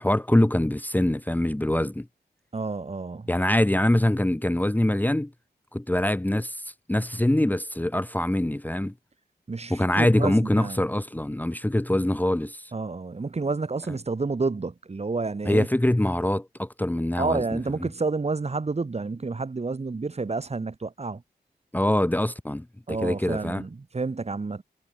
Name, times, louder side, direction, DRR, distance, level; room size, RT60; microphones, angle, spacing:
voice 1, 0.0-2.1 3.3-5.3 5.7-8.9 9.7-12.7 15.4-17.9 21.7-23.6, left 1 dB, 10° left, 1.1 m, -24 dB
voice 2, 2.5-3.3 9.5-10.8 12.7-15.7 17.2-21.2 22.9-24.6, right 3 dB, 40° right, 1.9 m, -29 dB
cardioid pair, 70°, 17 cm